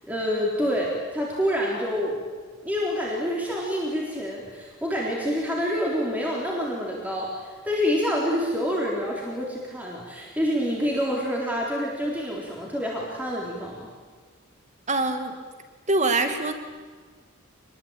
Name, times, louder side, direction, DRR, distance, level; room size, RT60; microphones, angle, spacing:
voice 1, 0.0-2.2 2.6-13.9, equal, 5° right, -3 dB, 3.8 m, -27 dB
voice 2, 14.9-15.3 15.9-16.5, right 2 dB, 30° right, 7 dB, 2.3 m, -23 dB
27.0 x 21.5 x 8.9 m, 1.5 s
head